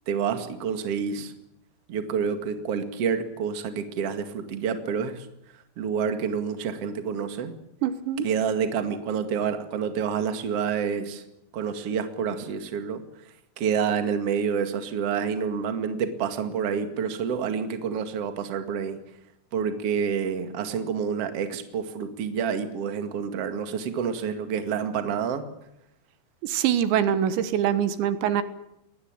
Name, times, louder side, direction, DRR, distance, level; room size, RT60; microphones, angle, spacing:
voice 1, 0.1-1.3 1.9-5.3 5.8-7.5 8.2-11.2 11.5-13.0 13.6-19.0 19.5-25.4, right 7 dB, 45° right, 8 dB, 2.4 m, -28 dB
voice 2, 7.8-8.3 26.4-28.4, right 9 dB, 80° right, 12 dB, 3.7 m, -24 dB
21.5 x 19.0 x 8.9 m, 0.82 s
omnidirectional pair, 5.1 m